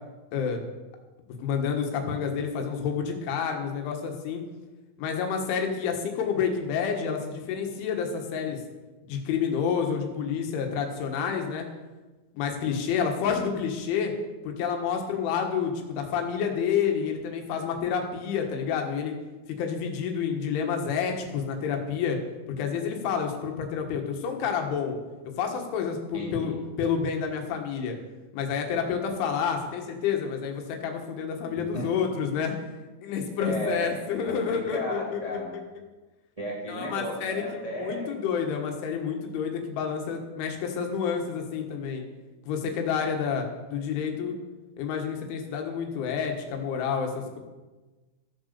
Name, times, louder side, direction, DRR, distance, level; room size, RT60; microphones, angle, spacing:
voice 1, 1.4-4.4 5.0-8.6 9.1-11.7 12.4-14.1 14.4-19.2 19.5-22.2 22.6-25.0 25.4-28.0 28.3-32.7 33.0-35.4 36.7-42.0 42.5-44.4 44.8-47.4, left 7 dB, 75° left, 3 dB, 3.9 m, -29 dB
voice 2, 13.2-13.5 26.1-26.6 31.6-31.9 33.4-34.0 34.3-35.6 36.4-38.1, equal, 35° right, -5 dB, 0.5 m, -34 dB
15.5 x 8.1 x 6.8 m, 1.2 s
omnidirectional pair, 5.8 m